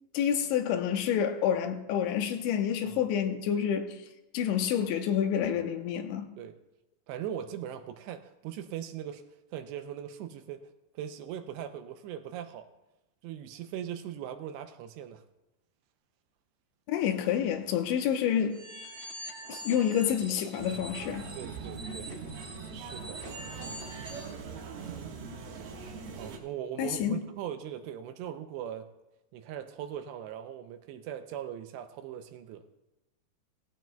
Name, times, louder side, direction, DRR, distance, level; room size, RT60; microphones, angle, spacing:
voice 1, 0.1-3.9 4.3-6.3 16.9-18.6 19.5-21.3 26.8-27.2, left 9 dB, 85° left, 3.2 m, -28 dB
voice 2, 7.1-9.2 9.5-10.6 11.0-12.7 13.2-15.2 21.3-22.1 22.7-23.2 23.6-23.8 26.2-28.9 29.3-32.7, right 10 dB, 80° right, 2.6 m, -40 dB
sound 1, 18.5-24.3, right 1 dB, 45° right, 1.6 m, -44 dB
sound 2, 20.6-26.4, right 5 dB, 65° right, 3.1 m, -42 dB
18.5 x 15.0 x 2.3 m
omnidirectional pair, 5.3 m